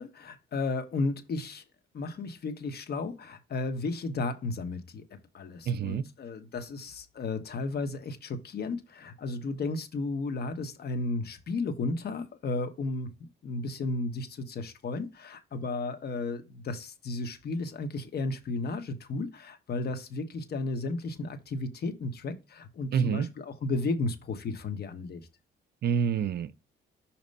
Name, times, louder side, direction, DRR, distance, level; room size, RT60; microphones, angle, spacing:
voice 1, 0.0-1.6 1.9-5.1 5.3-25.3, left 3 dB, 55° left, 1.1 m, -34 dB
voice 2, 5.7-6.1 22.9-23.3 25.8-26.5, right 7 dB, 55° right, 0.5 m, -27 dB
6.3 x 2.9 x 5.3 m
cardioid pair, 90°, 20 cm